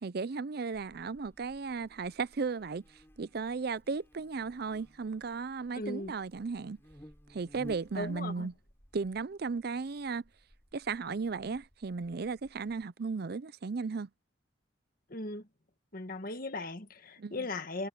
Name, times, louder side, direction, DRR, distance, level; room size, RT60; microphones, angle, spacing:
voice 1, 0.0-2.8 3.2-6.8 7.3-8.5 8.9-10.2 10.7-14.1 17.2-17.5, right 4 dB, 55° right, 0.5 m, -35 dB
Buzz, 0.7-12.8, equal, 10° left, 6.6 m, -57 dB
voice 2, 5.7-6.1 8.0-8.5 15.1-15.5 15.9-17.9, left 2 dB, 45° left, 1.7 m, -38 dB
head